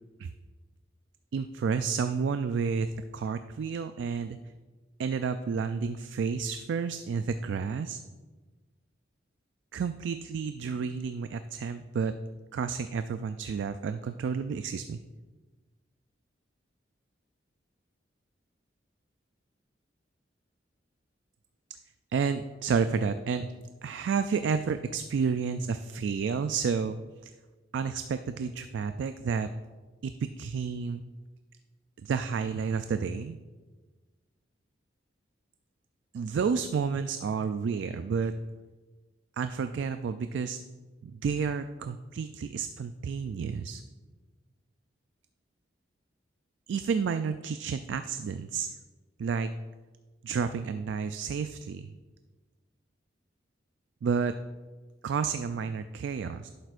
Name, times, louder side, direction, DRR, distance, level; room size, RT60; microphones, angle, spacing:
voice 1, 1.3-2.9 3.1-4.4 5.0-8.0 9.7-12.1 12.5-15.0 22.1-23.5 23.8-27.3 27.7-29.5 30.0-31.0 32.0-33.4 36.1-38.3 39.4-40.6 41.0-43.8 46.7-48.8 49.2-49.5 50.2-51.9 54.0-54.3 55.0-56.5, right 5 dB, 75° right, 10 dB, 0.3 m, -30 dB
11.0 x 7.9 x 2.5 m, 1.3 s
head